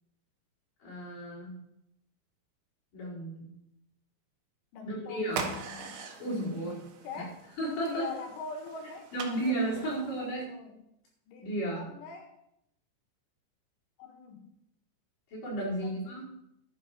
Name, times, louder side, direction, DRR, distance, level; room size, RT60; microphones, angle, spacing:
voice 1, 0.8-1.5 2.9-3.5 4.8-5.4 6.2-6.8 7.2-7.3 7.6-8.1 9.1-10.5 11.4-11.9 15.3-16.2, right 1 dB, 40° left, -6 dB, 6.2 m, -33 dB
voice 2, 4.7-7.5 7.9-10.1 10.5-10.8 11.3-11.5 11.8-12.4 14.0-14.5 15.8-16.3, left 5 dB, 75° left, 4 dB, 3.8 m, -44 dB
sound 1, 5.3-10.5, right 5 dB, 70° right, 3.5 m, -42 dB
11.5 x 8.2 x 6.4 m, 0.79 s
omnidirectional pair, 5.7 m